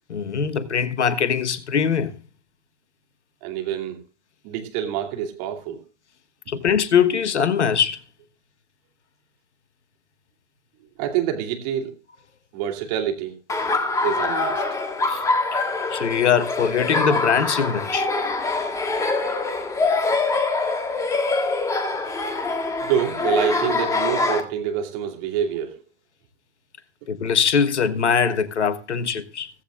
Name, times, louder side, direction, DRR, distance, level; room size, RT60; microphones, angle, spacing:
voice 1, 0.1-2.1 6.5-8.0 15.1-15.2 15.5-15.6 15.9-18.1 27.1-29.5, left 7 dB, 65° left, 1.3 m, -22 dB
voice 2, 3.4-4.0 4.4-5.8 11.0-11.9 12.5-13.4 14.0-14.6 22.8-25.8, right 9 dB, 35° right, 2.7 m, -26 dB
Laughter, 13.5-24.4, left 3 dB, 10° left, 1.5 m, -24 dB
16.0 x 15.0 x 2.3 m
figure-of-eight pair, 120°, 37 cm